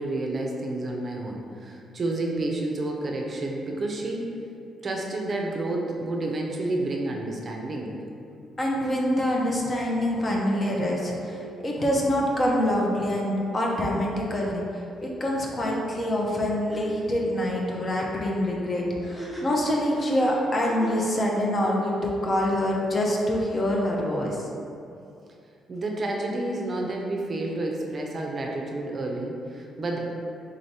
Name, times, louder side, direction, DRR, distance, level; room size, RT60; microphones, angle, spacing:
voice 1, 0.0-4.3 4.8-7.9 25.7-30.0, right 2 dB, 40° right, 0 dB, 0.5 m, -30 dB
voice 2, 8.6-24.4, left 1 dB, 35° left, -2 dB, 0.6 m, -25 dB
sound 1, 16.3-16.4 16.7-16.8 19.0-21.1, right 1 dB, ahead, 0.8 m, -40 dB
3.8 x 3.2 x 2.7 m, 2.5 s
cardioid pair, 90°, 0 cm